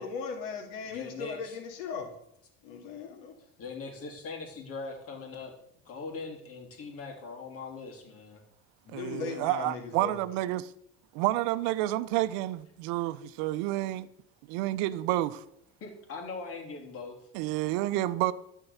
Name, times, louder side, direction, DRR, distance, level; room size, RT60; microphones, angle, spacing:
voice 1, 0.0-2.1 2.6-3.4 8.9-10.2, left 5 dB, 80° left, 2.2 m, -38 dB
voice 2, 0.8-1.6 3.4-5.5 5.8-8.4 15.8-17.2, left 4 dB, 45° left, 3.2 m, -41 dB
voice 3, 8.9-10.7 11.1-14.1 14.5-15.4 17.3-18.3, right 16 dB, 75° right, 0.7 m, -29 dB
12.5 x 4.6 x 7.2 m
supercardioid pair, 100°, 32 cm